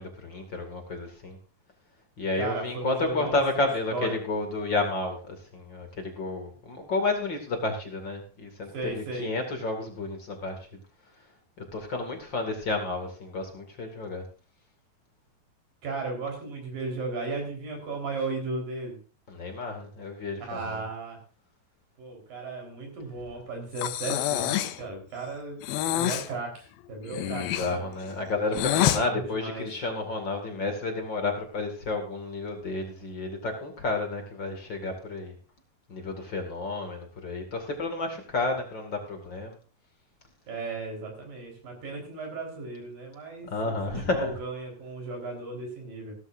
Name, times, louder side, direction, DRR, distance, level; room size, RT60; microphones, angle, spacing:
voice 1, 0.0-1.4 2.2-10.8 11.7-14.2 19.3-20.8 27.1-35.3 35.9-39.6 43.4-44.3, left 3 dB, 35° left, 4 dB, 2.4 m, -31 dB
voice 2, 2.3-4.2 8.7-9.3 15.8-19.0 20.5-21.2 22.0-25.6 25.9-27.8 28.7-29.7 40.5-46.2, right 3 dB, 65° right, 2 dB, 5.9 m, -35 dB
Breathing, 23.8-24.8 25.6-26.3 27.1-29.0, left 13 dB, 85° left, 2.7 m, -27 dB
16.5 x 13.5 x 2.6 m, 0.36 s
omnidirectional pair, 4.3 m